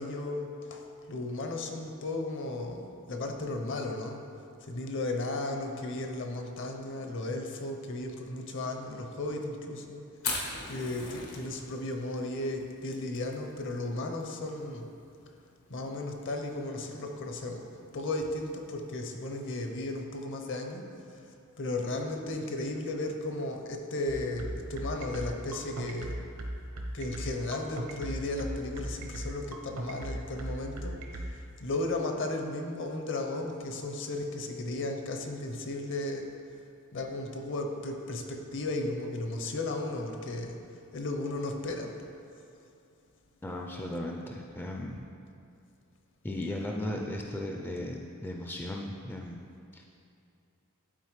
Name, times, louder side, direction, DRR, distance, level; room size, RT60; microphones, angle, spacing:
voice 1, 0.0-2.8 3.1-4.2 4.6-10.0 10.7-14.9 15.7-17.6 17.9-20.9 21.6-26.2 26.9-36.3 36.9-40.6 40.9-41.9, left 2 dB, 55° left, 3 dB, 0.8 m, -35 dB
Fire, 10.1-19.9, left 3 dB, 85° left, 1.2 m, -42 dB
sound 1, 24.1-31.3, right 1 dB, 70° right, 0.8 m, -36 dB
voice 2, 43.4-45.0 46.2-49.4 49.7-49.8, left 1 dB, 10° left, 0 dB, 0.3 m, -36 dB
11.5 x 4.4 x 3.1 m, 2.6 s
head